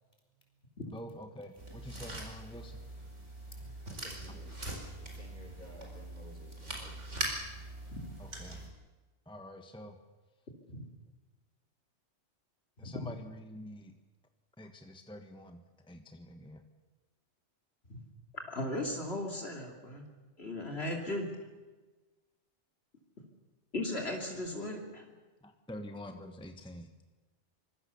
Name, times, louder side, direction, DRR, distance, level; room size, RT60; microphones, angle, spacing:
voice 1, 0.9-2.8 4.3-4.4 8.2-8.6 9.3-10.0 12.8-13.9 14.6-15.6 15.9-16.6 25.4-26.9, left 1 dB, 5° left, 6 dB, 1.3 m, -47 dB
sound 1, 1.6-8.7, right 1 dB, 90° right, 5.0 m, -42 dB
voice 2, 3.8-4.7 5.0-7.1, equal, 40° left, 2 dB, 5.5 m, -54 dB
voice 3, 18.5-20.0 20.4-21.3 23.7-25.0, left 1 dB, 60° left, 1 dB, 3.1 m, -37 dB
25.0 x 22.0 x 7.0 m, 1.2 s
omnidirectional pair, 1.2 m